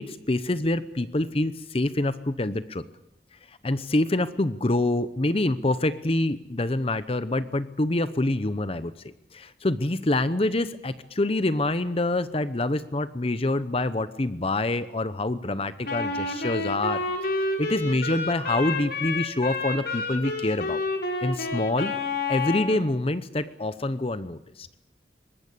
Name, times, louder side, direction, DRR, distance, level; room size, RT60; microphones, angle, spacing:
voice 1, 0.0-2.8 3.5-8.9 9.3-20.8 21.2-21.9 22.3-24.7, left 2 dB, 30° left, 13 dB, 0.8 m, -26 dB
Wind instrument woodwind instrument, 15.8-22.8, left 3 dB, 55° left, 4.9 m, -29 dB
23.5 x 20.5 x 8.4 m, 0.83 s
head